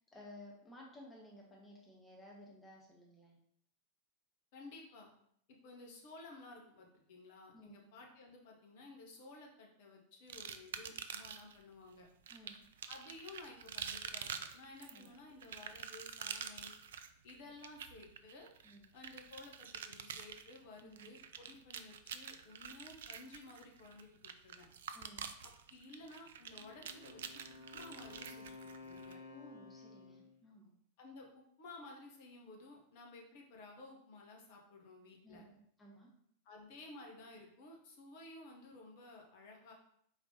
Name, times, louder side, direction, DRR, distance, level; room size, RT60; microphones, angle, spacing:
voice 1, 0.0-3.4 7.5-7.8 12.3-12.6 14.9-15.1 18.6-18.8 20.8-21.1 24.9-25.3 29.3-30.7 35.2-36.1, left 1 dB, 10° left, -2 dB, 1.2 m, -56 dB
voice 2, 4.5-5.1 5.6-12.1 12.9-16.7 17.2-18.5 18.9-24.7 25.4-27.4 27.7-29.2 31.0-35.5 36.4-39.7, left 2 dB, 50° left, 0 dB, 1.1 m, -55 dB
sound 1, 10.3-11.6 12.3-29.1, right 7 dB, 60° right, 0.3 m, -47 dB
Wind instrument woodwind instrument, 26.5-30.4, left 3 dB, 80° left, 0.9 m, -53 dB
4.3 x 4.0 x 2.8 m, 0.67 s
figure-of-eight pair, 90°, 0 cm